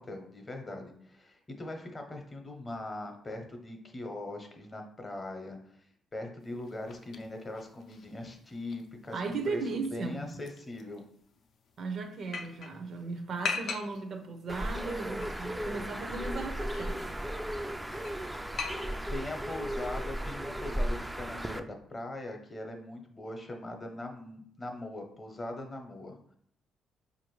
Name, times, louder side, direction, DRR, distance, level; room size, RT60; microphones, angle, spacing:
voice 1, 0.0-5.9 6.1-9.6 9.9-11.0 18.4-18.7 19.1-26.4, left 2 dB, 30° left, 0.8 m, -41 dB
sound 1, 6.4-19.4, left 5 dB, 65° left, 0.5 m, -43 dB
voice 2, 9.1-10.2 11.8-17.1, right 4 dB, 60° right, 0.5 m, -36 dB
Bird, 14.5-21.6, right 1 dB, 5° right, 0.3 m, -35 dB
4.5 x 2.5 x 3.1 m
cardioid pair, 90°, 0 cm